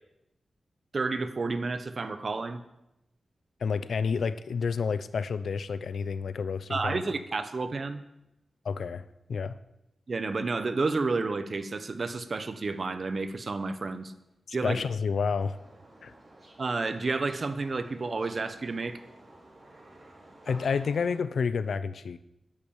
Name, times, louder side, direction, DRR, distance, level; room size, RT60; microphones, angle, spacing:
voice 1, 0.9-2.6 6.7-8.0 10.1-14.1 14.5-14.8 16.6-19.0, right 3 dB, 50° right, 11 dB, 1.2 m, -30 dB
voice 2, 3.6-7.0 8.6-9.6 14.5-15.6 16.0-16.1 20.5-22.2, left 5 dB, 80° left, 15 dB, 0.7 m, -30 dB
sound 1, 15.4-21.2, right 1 dB, 30° right, 4.8 m, -52 dB
10.5 x 8.7 x 8.9 m, 0.87 s
wide cardioid pair, 85°, 0 cm